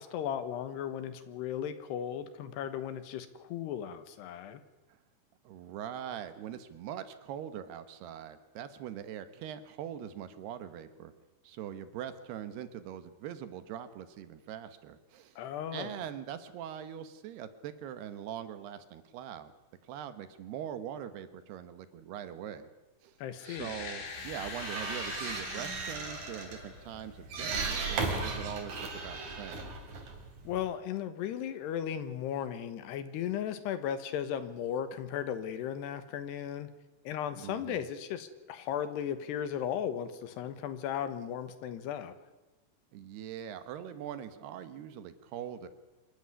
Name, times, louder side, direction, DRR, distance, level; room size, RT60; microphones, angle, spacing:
voice 1, 0.0-4.6 15.4-16.0 23.2-23.7 30.4-36.7 37.0-42.1, left 9 dB, 75° left, 11 dB, 3.3 m, -36 dB
voice 2, 5.4-11.1 11.4-15.4 15.7-19.5 19.9-22.7 23.0-23.1 23.4-29.7 37.4-37.9 42.9-45.7, right 9 dB, 75° right, 11 dB, 3.1 m, -42 dB
sound 1, 23.4-27.3, left 4 dB, 50° left, 3.9 m, -43 dB
sound 2, 24.2-30.7, right 4 dB, 55° right, 4.7 m, -37 dB
25.5 x 13.5 x 9.8 m, 1.1 s
omnidirectional pair, 5.0 m